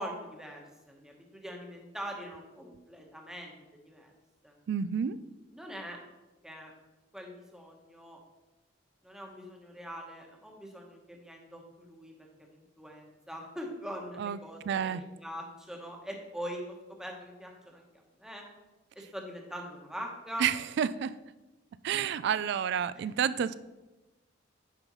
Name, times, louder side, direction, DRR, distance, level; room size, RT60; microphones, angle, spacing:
voice 1, 0.0-4.1 4.4-4.5 5.5-6.0 6.4-6.7 7.1-8.2 9.0-12.1 12.4-17.8 18.2-18.4 18.9-20.5 22.9-23.1, equal, 5° right, 0 dB, 1.1 m, -43 dB
voice 2, 4.7-5.2 14.2-14.4 14.7-15.0 20.4-21.1 21.8-23.5, right 8 dB, 65° right, 16 dB, 0.3 m, -29 dB
9.2 x 5.3 x 3.1 m, 1.1 s
head